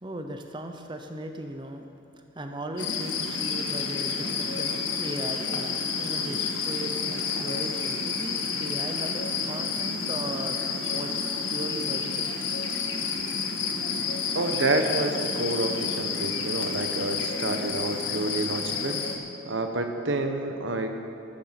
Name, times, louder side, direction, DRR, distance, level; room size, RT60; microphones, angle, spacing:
voice 1, 0.0-1.9 2.3-11.2 11.5-12.3, right 1 dB, 25° right, 5 dB, 0.8 m, -37 dB
sound 1, 2.8-19.2, left 5 dB, 65° left, 1.6 m, -30 dB
voice 2, 14.3-19.0 19.5-20.9, right 2 dB, 65° right, 6 dB, 1.0 m, -28 dB
14.0 x 14.0 x 6.0 m, 2.7 s
head